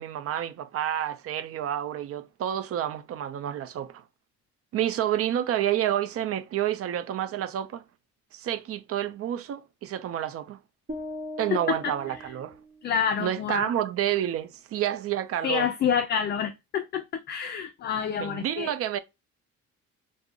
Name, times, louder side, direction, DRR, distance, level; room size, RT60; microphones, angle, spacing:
voice 1, 0.0-4.0 4.7-7.8 8.3-10.6 11.4-12.6 13.2-15.7 18.2-19.0, right 11 dB, 50° right, 0.5 m, -29 dB
sound 1, 10.9-13.1, left 1 dB, 35° right, 1.2 m, -40 dB
voice 2, 11.5-11.9 12.8-13.7 15.4-18.7, left 7 dB, 35° left, 0.4 m, -28 dB
2.4 x 2.1 x 3.5 m
cardioid pair, 95°, 30 cm